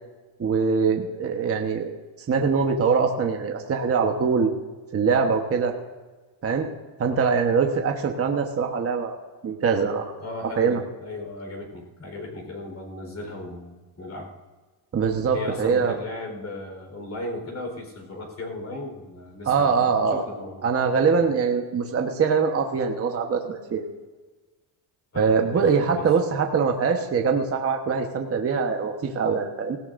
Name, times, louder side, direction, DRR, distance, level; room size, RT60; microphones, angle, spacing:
voice 1, 0.4-2.0 2.3-4.5 4.9-5.7 6.4-6.7 7.0-9.2 9.4-10.1 10.6-10.8 14.9-16.0 19.5-20.2 20.6-23.8 25.2-29.8, right 5 dB, 30° right, 3 dB, 1.2 m, -23 dB
voice 2, 10.2-14.3 15.3-20.6 21.2-21.3 25.1-25.6 25.9-26.1, left 2 dB, 35° left, 2 dB, 4.3 m, -36 dB
18.0 x 16.0 x 2.6 m, 1.3 s
cardioid pair, 120°, 47 cm